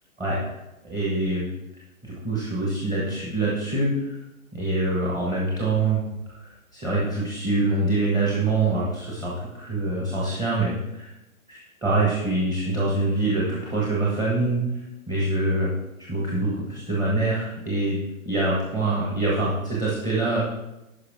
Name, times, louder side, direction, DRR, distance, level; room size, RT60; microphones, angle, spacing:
voice 1, 0.8-1.5 2.0-4.2 4.5-6.0 6.3-11.1 11.5-15.7 16.0-18.0 18.2-20.4, right 2 dB, 10° right, -6 dB, 1.2 m, -25 dB
9.7 x 5.7 x 3.5 m, 0.94 s
hypercardioid pair, 145°, 42 cm